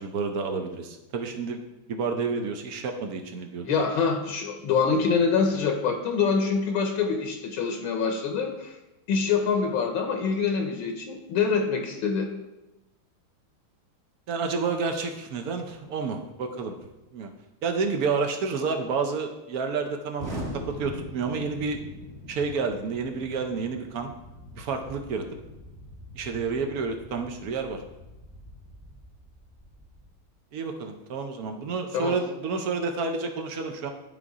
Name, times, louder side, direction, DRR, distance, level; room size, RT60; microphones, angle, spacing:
voice 1, 0.0-1.6 1.9-3.7 14.3-16.7 17.1-17.3 17.6-21.8 22.3-24.1 24.5-25.2 26.2-27.8 30.5-33.9, right 4 dB, 70° right, 5 dB, 0.9 m, -30 dB
voice 2, 3.6-8.8 9.1-12.3 31.9-32.2, left 5 dB, 75° left, 4 dB, 1.5 m, -25 dB
Explosion, 20.2-30.1, equal, 40° right, 1.4 m, -42 dB
11.0 x 3.7 x 4.8 m, 0.99 s
omnidirectional pair, 2.3 m